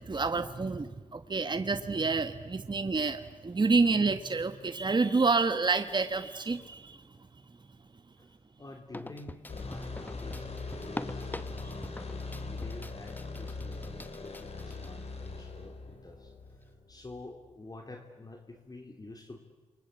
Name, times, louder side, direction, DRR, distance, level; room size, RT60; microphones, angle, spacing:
voice 1, 0.0-7.0, right 4 dB, 35° right, 9 dB, 1.4 m, -28 dB
voice 2, 8.6-10.5 10.8-11.9 12.4-16.3 16.9-19.4, left 2 dB, 30° left, 3 dB, 3.1 m, -48 dB
sound 1, 8.9-14.9 15.3-15.4 16.2-16.3, left 1 dB, 15° left, 1.2 m, -44 dB
sound 2, 9.5-17.5, left 3 dB, 50° left, 4.5 m, -41 dB
28.5 x 24.0 x 8.2 m, 1.4 s
cardioid pair, 75°, 13 cm